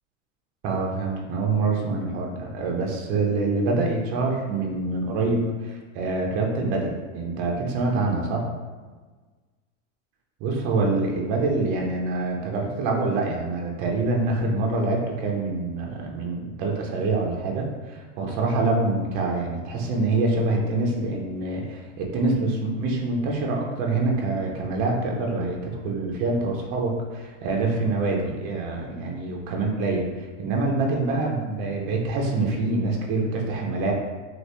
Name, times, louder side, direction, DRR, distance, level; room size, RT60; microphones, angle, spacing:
voice 1, 0.6-8.5 10.4-33.9, right 3 dB, 25° right, 0 dB, 0.4 m, -25 dB
2.8 x 2.7 x 3.2 m, 1.4 s
supercardioid pair, 145°, 38 cm